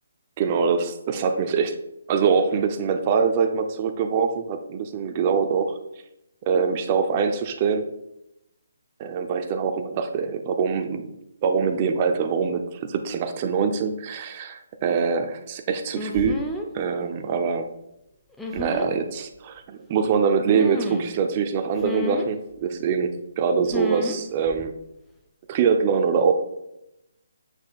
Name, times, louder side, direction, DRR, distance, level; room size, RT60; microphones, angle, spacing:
voice 1, 0.4-1.8 2.1-5.7 6.5-7.9 9.0-11.1 11.4-16.4 16.7-17.7 18.5-24.7 25.5-26.3, right 6 dB, 35° right, 6 dB, 0.6 m, -24 dB
sound 1, 15.9-16.7 18.4-18.9 20.5-21.1 21.8-22.3 23.7-24.2 24.5-24.7, left 1 dB, 5° left, 0.7 m, -31 dB
7.8 x 6.3 x 2.4 m, 0.85 s
hypercardioid pair, 150°, 0 cm